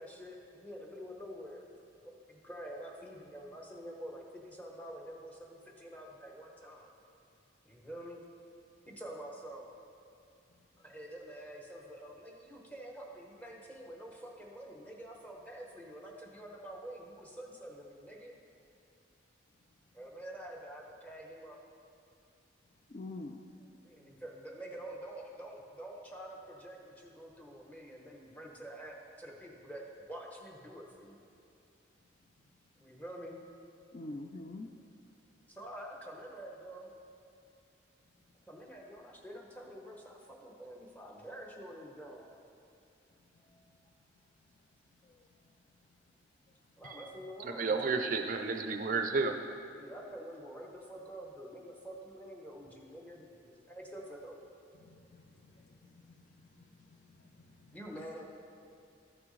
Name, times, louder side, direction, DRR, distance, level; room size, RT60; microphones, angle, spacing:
voice 1, 0.0-1.6 2.1-6.9 7.7-8.2 8.9-9.7 10.8-18.3 19.9-21.6 23.8-31.2 32.8-33.4 35.5-36.9 38.5-42.4 43.4-43.6 46.8-48.3 49.8-54.4 57.7-58.3, right 1 dB, 10° left, -1 dB, 0.9 m, -47 dB
voice 2, 22.9-23.4 33.9-34.7 54.9-55.0 56.0-56.5 57.4-57.7, left 2 dB, 40° left, 5 dB, 0.4 m, -45 dB
voice 3, 47.4-49.3, right 4 dB, 40° right, 6 dB, 0.4 m, -32 dB
13.5 x 6.0 x 3.2 m, 2.6 s
head